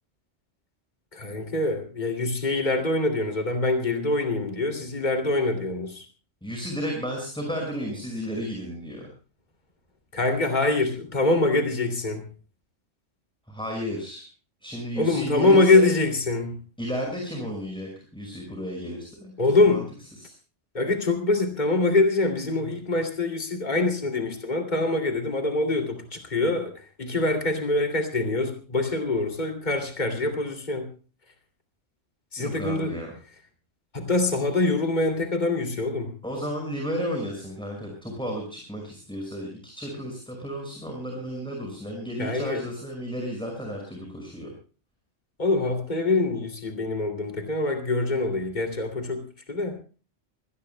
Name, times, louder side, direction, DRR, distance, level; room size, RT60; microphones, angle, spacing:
voice 1, 1.1-6.1 10.1-12.3 15.0-16.6 19.4-19.9 20.7-30.9 32.3-33.0 33.9-36.1 42.2-42.6 45.4-49.8, left 2 dB, 35° left, 3 dB, 2.9 m, -24 dB
voice 2, 6.4-9.1 13.5-14.3 14.6-15.9 16.8-19.3 19.7-19.8 20.2-20.3 32.4-33.1 36.2-44.5, equal, 5° left, 1 dB, 5.6 m, -33 dB
25.5 x 18.5 x 2.2 m, 0.37 s
omnidirectional pair, 1.3 m